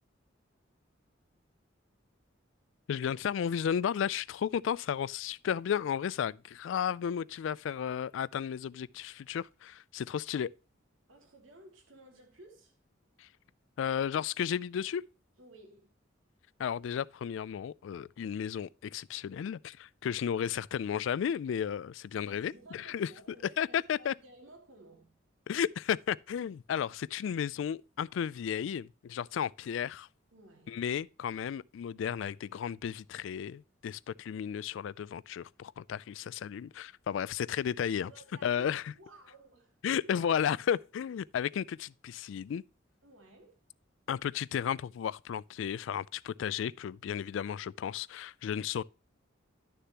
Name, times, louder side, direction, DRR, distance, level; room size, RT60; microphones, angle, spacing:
voice 1, 2.9-10.5 13.2-13.3 13.8-15.0 16.6-23.1 23.6-24.1 25.5-30.1 30.7-38.1 38.4-38.9 39.8-42.6 44.1-48.8, left 8 dB, 70° left, 0.3 m, -33 dB
voice 2, 11.1-12.8 15.4-16.0 22.2-25.2 30.3-30.9 38.0-38.7 38.9-39.8 43.0-43.6, right 2 dB, 85° right, 2.5 m, -56 dB
11.0 x 6.7 x 2.9 m
head